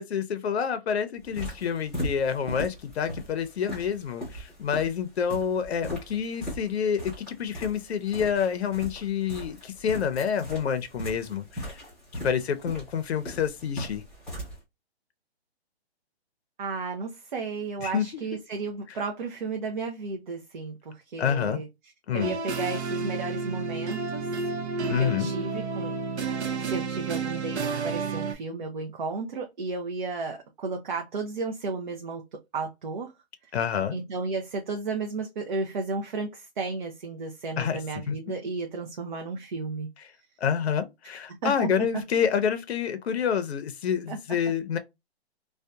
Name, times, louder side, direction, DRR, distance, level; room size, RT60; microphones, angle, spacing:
voice 1, 0.0-11.8 12.1-14.0 17.8-18.0 21.2-21.6 22.1-22.3 24.9-25.3 33.5-33.9 37.6-37.8 38.1-38.2 40.4-44.8, left 7 dB, 75° left, 0.6 m, -28 dB
sound 1, 1.2-14.6, equal, ahead, 0.8 m, -39 dB
voice 2, 16.6-21.7 22.1-24.2 24.9-33.1 33.9-39.9 41.3-42.0 44.1-44.2, right 4 dB, 50° right, 0.5 m, -33 dB
sound 2, 22.2-28.3, right 4 dB, 90° right, 0.7 m, -31 dB
2.6 x 2.2 x 2.2 m
hypercardioid pair, 170°, 32 cm